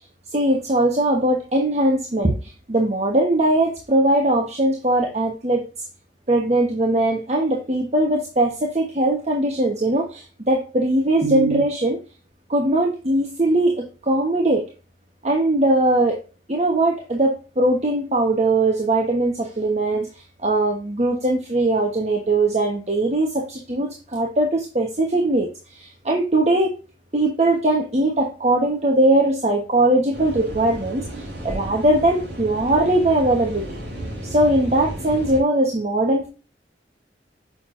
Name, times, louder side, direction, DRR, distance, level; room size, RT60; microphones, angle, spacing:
voice 1, 0.3-5.6 6.3-12.0 12.5-14.6 15.2-16.2 16.5-20.1 20.4-26.7 27.1-33.6 34.2-36.3, right 1 dB, 40° right, 0 dB, 1.1 m, -20 dB
sound 1, 30.1-35.4, right 1 dB, 65° right, 3.5 m, -33 dB
6.9 x 6.0 x 2.6 m, 0.32 s
head